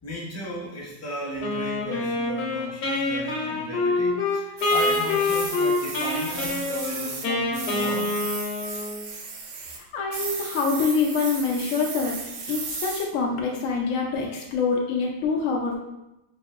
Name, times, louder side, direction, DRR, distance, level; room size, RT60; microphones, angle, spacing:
voice 1, 0.0-8.2, left 1 dB, 15° left, -5 dB, 0.5 m, -35 dB
Wind instrument woodwind instrument, 1.4-9.1, left 2 dB, 65° left, 1.1 m, -26 dB
sound 1, 4.6-7.3 7.5-9.8 10.1-13.0, right 4 dB, 70° right, 0.7 m, -35 dB
voice 2, 9.8-12.2 12.5-15.8, left 5 dB, 85° left, -1 dB, 0.7 m, -25 dB
5.5 x 2.6 x 2.4 m, 0.93 s
omnidirectional pair, 1.9 m